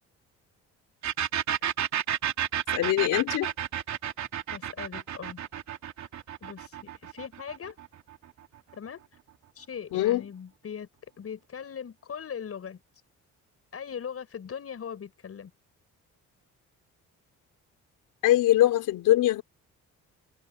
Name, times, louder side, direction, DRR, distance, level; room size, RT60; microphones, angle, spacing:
sound 1, 1.0-8.5, right 10 dB, 70° right, 3.2 m, -31 dB
voice 1, 2.7-3.5 9.9-10.2 18.2-19.4, left 14 dB, 90° left, 3.7 m, -22 dB
voice 2, 4.5-5.4 6.4-7.8 8.7-9.0 9.6-10.9 11.2-12.8 13.7-15.5, left 7 dB, 50° left, 6.8 m, -40 dB
cardioid pair, 90°, 30 cm